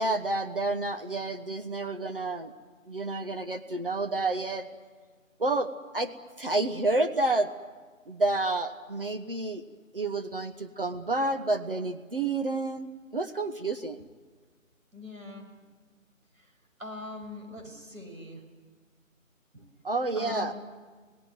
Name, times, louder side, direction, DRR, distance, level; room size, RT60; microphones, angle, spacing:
voice 1, 0.0-2.5 2.9-4.7 5.4-7.5 8.1-9.6 9.9-12.9 13.1-14.0 19.8-20.5, right 2 dB, 40° right, 7 dB, 1.3 m, -29 dB
voice 2, 14.9-15.5 16.8-18.4 19.5-19.7 20.2-20.5, left 2 dB, 85° right, 4 dB, 6.5 m, -41 dB
27.0 x 18.5 x 9.6 m, 1.4 s
figure-of-eight pair, 160°, 41 cm